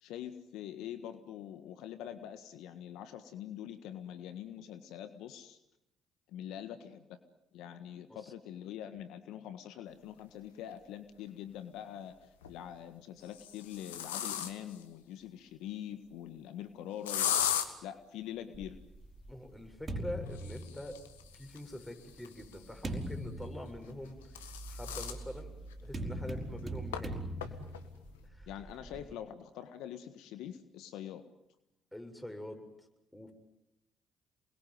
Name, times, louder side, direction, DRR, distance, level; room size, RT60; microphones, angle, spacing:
voice 1, 0.0-5.6 6.3-7.2 7.5-12.1 12.5-17.3 17.8-18.8 28.5-31.2, left 10 dB, 70° left, 10 dB, 1.5 m, -44 dB
sound 1, 10.7-10.8 12.2-12.6 13.2-14.8 17.1-17.7 20.3-22.9 23.9-25.2 25.7-25.8 26.1-26.2 26.9-27.0 27.4-27.8, left 10 dB, 85° left, 1.7 m, -37 dB
sound 2, 18.5-21.3 22.1-29.1, right 1 dB, 35° right, 4.8 m, -42 dB
voice 2, 19.3-21.0 21.3-25.5 25.8-27.7 28.3-28.5 31.9-32.7 33.1-33.3, left 1 dB, 10° left, 5 dB, 7.1 m, -45 dB
28.0 x 21.5 x 9.6 m, 0.87 s
hypercardioid pair, 50°, 0 cm